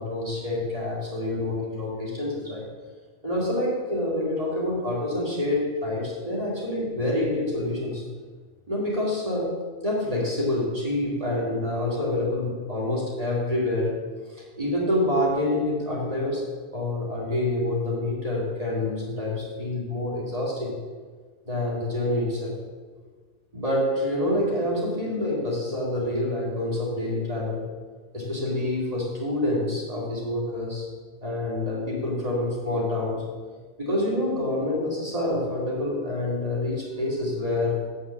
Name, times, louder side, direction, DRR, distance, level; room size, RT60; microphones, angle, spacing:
voice 1, 0.0-2.7 3.2-8.0 8.7-9.6 9.8-14.0 14.6-16.4 16.7-20.8 21.4-22.6 23.5-27.6 28.1-30.9 31.2-33.2 33.8-37.9, left 1 dB, 35° right, -4 dB, 2.7 m, -27 dB
8.3 x 5.7 x 7.2 m, 1.5 s
omnidirectional pair, 1.1 m